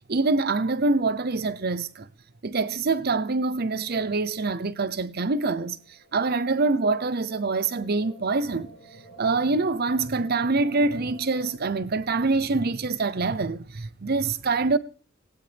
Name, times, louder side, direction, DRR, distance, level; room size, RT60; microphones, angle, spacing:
voice 1, 0.1-2.1 2.4-5.8 6.1-8.7 9.2-14.8, right 3 dB, 50° right, 0.7 m, -25 dB
sound 1, 5.8-11.6, equal, 85° left, 2.7 m, -50 dB
18.0 x 17.5 x 3.5 m
head